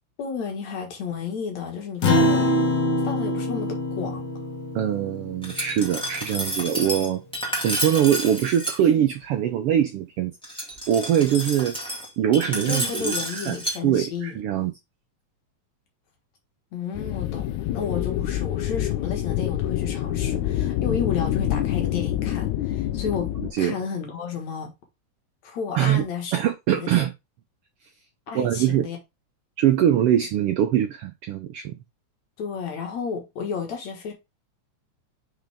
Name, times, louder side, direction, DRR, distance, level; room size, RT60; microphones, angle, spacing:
voice 1, 0.2-2.5 3.0-4.2 12.5-14.4 16.7-23.3 23.6-24.7 25.4-26.3 26.7-26.9 28.3-29.0 32.4-34.1, left 6 dB, 65° left, 2.8 m, -32 dB
Acoustic guitar, 2.0-6.7, left 1 dB, 50° left, 1.5 m, -25 dB
voice 2, 4.7-7.2 7.6-10.3 10.9-11.8 12.2-14.7 23.5-23.7 25.7-26.1 26.3-27.1 28.3-28.9 29.6-31.8, right 10 dB, 90° right, 1.2 m, -22 dB
Glass, 5.4-8.8 10.4-13.8, right 1 dB, ahead, 1.4 m, -30 dB
sound 1, 16.9-23.5, left 12 dB, 80° left, 2.0 m, -26 dB
6.0 x 5.7 x 3.5 m
omnidirectional pair, 3.5 m